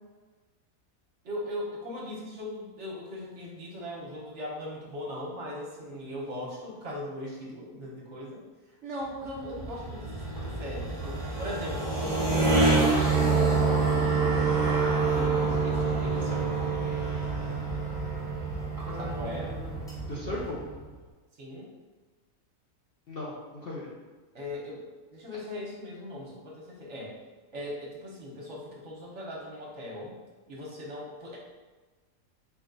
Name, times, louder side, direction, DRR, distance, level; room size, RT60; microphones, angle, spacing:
voice 1, 1.2-8.4 8.8-14.6 15.1-16.8 19.0-19.5 21.4-21.7 24.3-24.8 25.1-27.2 27.5-30.2 30.5-31.4, left 1 dB, 60° right, -4 dB, 1.1 m, -39 dB
sound 1, 9.2-20.8, right 4 dB, 5° left, 1.1 m, -27 dB
voice 2, 18.9-19.7 20.1-20.6 23.1-23.9, left 2 dB, 55° left, -5 dB, 0.7 m, -38 dB
4.3 x 2.3 x 3.8 m, 1.3 s
omnidirectional pair, 1.5 m